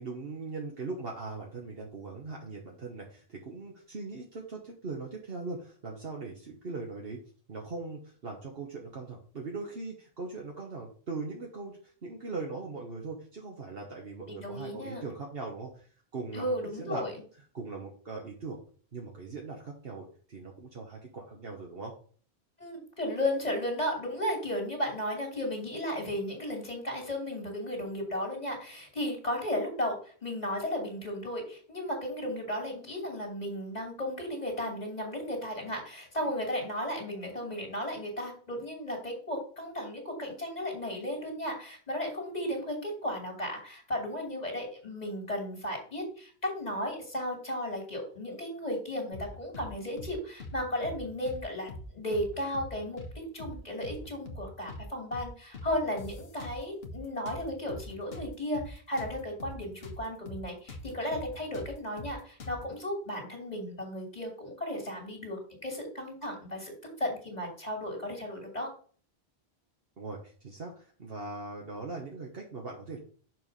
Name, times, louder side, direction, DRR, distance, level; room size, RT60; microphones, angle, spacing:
voice 1, 0.0-7.2 7.5-15.9 16.1-17.0 17.5-18.6 18.9-21.9 70.0-70.2 70.4-73.0, right 3 dB, 65° right, -1 dB, 1.5 m, -40 dB
voice 2, 14.3-15.0 16.3-17.1 22.6-53.0 53.3-66.7 67.0-68.7, left 1 dB, 40° left, -1 dB, 2.4 m, -35 dB
sound 1, 49.1-49.7 50.0-50.1 50.4-51.4 51.7-51.8 52.1-53.1 53.4-53.6 53.8-54.8 55.1-55.3 55.5-57.0 57.3-60.0 60.3-60.4 60.7-62.7, left 2 dB, 70° left, 1.3 m, -43 dB
6.2 x 4.7 x 5.2 m, 0.43 s
omnidirectional pair, 1.1 m